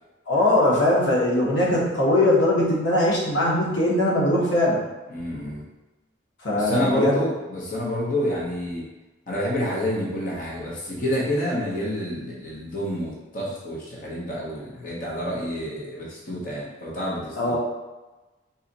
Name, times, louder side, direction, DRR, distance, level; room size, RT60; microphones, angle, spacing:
voice 1, 0.3-4.8 6.4-7.2 17.3-17.6, left 1 dB, 80° left, -4 dB, 1.2 m, -21 dB
voice 2, 5.1-5.6 6.5-8.9 9.3-17.5, left 1 dB, 45° left, -5 dB, 1.0 m, -28 dB
4.0 x 2.8 x 4.0 m, 1.1 s
head